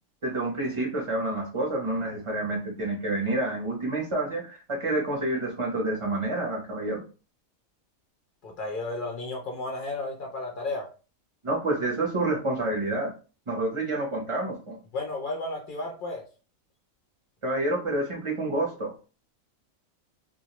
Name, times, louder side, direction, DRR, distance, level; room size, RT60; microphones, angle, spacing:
voice 1, 0.2-7.0 11.4-13.1 13.5-14.8 17.4-18.9, right 2 dB, 35° right, -1 dB, 0.5 m, -28 dB
voice 2, 8.4-10.8 14.9-16.2, left 2 dB, 70° left, 1 dB, 0.4 m, -33 dB
2.2 x 2.1 x 2.8 m, 0.35 s
omnidirectional pair, 1.4 m